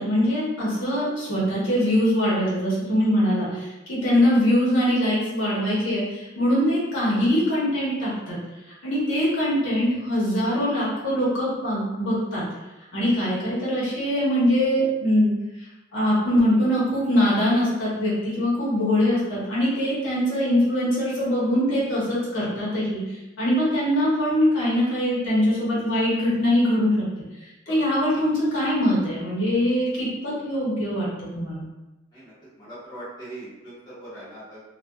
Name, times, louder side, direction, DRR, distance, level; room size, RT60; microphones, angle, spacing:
voice 1, 0.0-8.4 8.8-12.4 12.9-15.3 15.9-23.0 23.4-27.0 27.7-31.1 31.3-31.7, equal, 75° left, -8 dB, 0.9 m, -22 dB
voice 2, 32.1-34.6, right 1 dB, 20° left, -11 dB, 1.1 m, -41 dB
2.5 x 2.2 x 2.2 m, 1.0 s
head